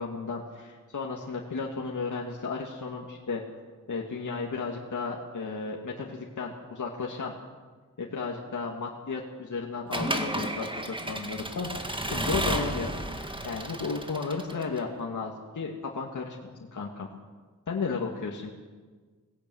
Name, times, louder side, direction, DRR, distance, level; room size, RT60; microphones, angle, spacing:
voice 1, 0.0-3.4 3.9-7.3 8.0-13.0 13.4-17.1 17.7-18.5, left 4 dB, 60° left, -1 dB, 2.4 m, -34 dB
Accelerating revving vroom / Mechanisms, 9.9-14.8, right 1 dB, 15° right, 2.2 m, -32 dB
19.0 x 15.5 x 9.5 m, 1.4 s
cardioid pair, 55°, 35 cm